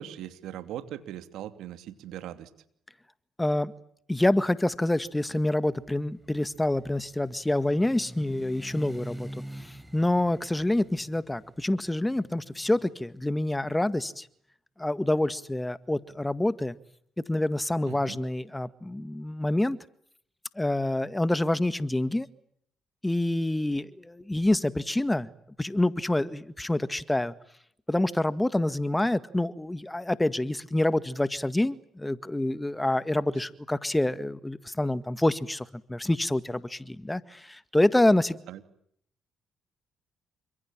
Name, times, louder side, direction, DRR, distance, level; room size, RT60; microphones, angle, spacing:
voice 1, 0.0-2.5 17.8-18.2 38.5-38.6, right 11 dB, 75° right, 10 dB, 2.8 m, -40 dB
voice 2, 3.4-3.7 4.1-9.3 9.6-14.3 14.8-16.8 17.3-19.8 20.6-22.3 23.0-25.3 25.6-27.3 27.9-38.4, left 1 dB, 15° left, 14 dB, 1.9 m, -27 dB
sound 1, 5.7-13.7, right 1 dB, 5° right, 4.9 m, -46 dB
29.5 x 26.0 x 7.5 m, 0.68 s
hypercardioid pair, 50°, 0 cm